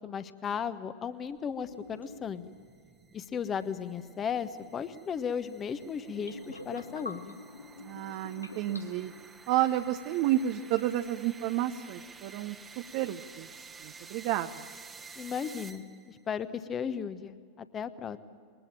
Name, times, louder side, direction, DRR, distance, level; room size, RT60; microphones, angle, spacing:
voice 1, 0.0-2.5 3.1-7.4 15.2-18.2, left 7 dB, 25° left, 13 dB, 1.1 m, -35 dB
sound 1, 1.4-16.2, right 5 dB, 15° right, 1.3 m, -52 dB
sound 2, 1.6-2.6 6.1-9.3, left 2 dB, 85° left, 1.0 m, -46 dB
voice 2, 7.8-9.1 9.5-14.7, right 12 dB, 45° right, 7 dB, 0.8 m, -31 dB
22.0 x 20.0 x 8.9 m, 2.1 s
figure-of-eight pair, 90°, 0 cm